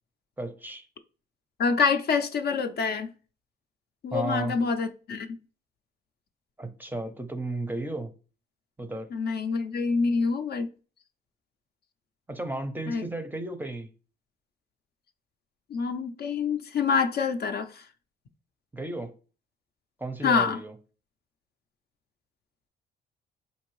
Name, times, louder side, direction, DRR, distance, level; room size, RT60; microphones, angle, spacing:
voice 1, 0.4-0.9 4.1-4.6 6.6-8.1 8.8-9.1 12.3-13.9 18.7-19.2 20.0-20.7, right 2 dB, 10° right, 0.5 m, -33 dB
voice 2, 1.6-3.1 4.0-5.4 9.1-10.7 12.9-13.0 15.7-17.9 20.2-20.6, left 5 dB, 55° left, 0.5 m, -26 dB
4.5 x 2.6 x 3.0 m
cardioid pair, 90°, 20 cm